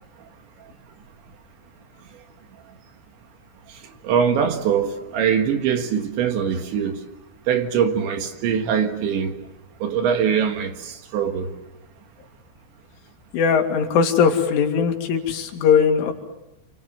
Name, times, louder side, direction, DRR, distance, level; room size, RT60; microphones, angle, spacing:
voice 1, 4.0-7.0 7.5-9.4 9.8-11.5, right 7 dB, 70° right, 3.8 m, -22 dB
voice 2, 13.3-16.1, left 6 dB, 70° left, 4.7 m, -19 dB
29.5 x 25.0 x 7.7 m
omnidirectional pair, 5.8 m